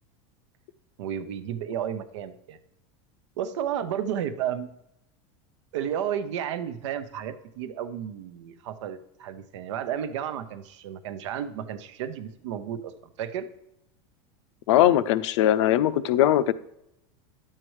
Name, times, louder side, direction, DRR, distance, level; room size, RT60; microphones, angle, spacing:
voice 1, 1.0-2.6 3.4-4.7 5.7-13.5, right 9 dB, 80° right, 11 dB, 0.8 m, -32 dB
voice 2, 14.7-16.5, left 12 dB, 80° left, 14 dB, 0.5 m, -20 dB
10.5 x 7.5 x 3.1 m, 0.81 s
supercardioid pair, 155°, 15 cm